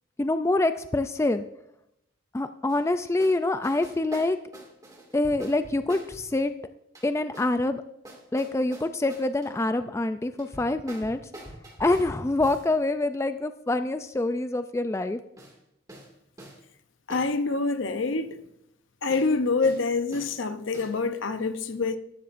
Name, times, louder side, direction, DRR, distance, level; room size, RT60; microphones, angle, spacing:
voice 1, 0.2-1.4 2.3-4.4 5.1-6.5 7.0-7.8 8.3-11.2 11.8-15.2, left 2 dB, 15° left, 0.3 m, -26 dB
sound 1, 2.7-2.8 3.2-3.4 3.6-6.3 6.9-7.5 8.0-9.5 10.4-12.7 15.4-15.5 15.9-16.1 16.4-16.6 17.1-17.3 19.1-19.3 19.6-19.8 20.1-20.3 20.7-21.0, right 1 dB, 20° right, 2.2 m, -45 dB
voice 2, 17.1-18.4 19.0-22.0, left 3 dB, 70° left, 0.7 m, -26 dB
14.0 x 12.5 x 2.6 m
head